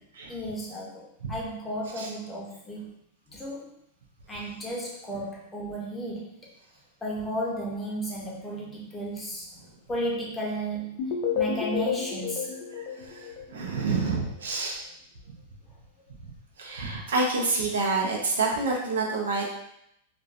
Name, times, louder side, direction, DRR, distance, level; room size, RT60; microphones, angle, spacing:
voice 1, 0.3-2.9 3.3-3.8 4.3-6.4 7.0-12.5, right 1 dB, 15° left, -4 dB, 0.7 m, -34 dB
sound 1, 11.0-13.9, left 6 dB, 55° left, 0.4 m, -31 dB
voice 2, 12.7-14.8 16.2-16.3 16.6-19.5, right 3 dB, 85° right, -1 dB, 0.6 m, -28 dB
2.5 x 2.2 x 2.4 m, 0.76 s
hypercardioid pair, 120°, 0 cm